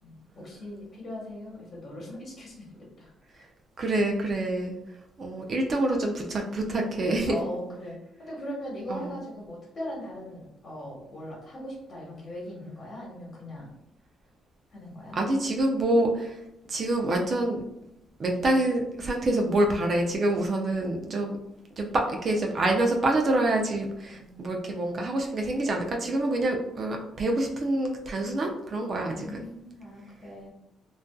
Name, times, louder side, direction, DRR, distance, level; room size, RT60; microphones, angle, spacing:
voice 1, 0.0-3.1 4.2-4.3 7.3-13.7 14.7-15.2 24.1-24.5 28.9-30.5, equal, 45° left, -4 dB, 1.1 m, -40 dB
voice 2, 3.8-4.7 5.2-7.4 8.9-9.1 15.2-16.3 16.7-17.6 18.2-21.4 21.8-29.5, right 1 dB, 45° right, 2 dB, 0.4 m, -26 dB
2.5 x 2.3 x 2.2 m, 0.84 s
cardioid pair, 90°, 0 cm